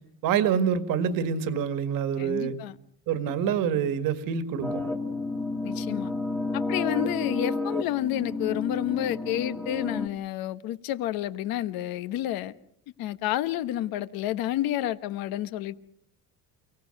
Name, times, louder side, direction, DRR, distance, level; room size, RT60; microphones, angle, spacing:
voice 1, 0.2-2.6 3.1-4.8, right 7 dB, 60° right, 1.8 m, -26 dB
voice 2, 2.2-2.8 5.6-6.1 6.5-12.5 13.0-15.7, left 13 dB, 70° left, 1.2 m, -30 dB
sound 1, 4.6-10.1, left 3 dB, 5° left, 1.6 m, -31 dB
29.0 x 17.0 x 6.5 m
cardioid pair, 165°, 37 cm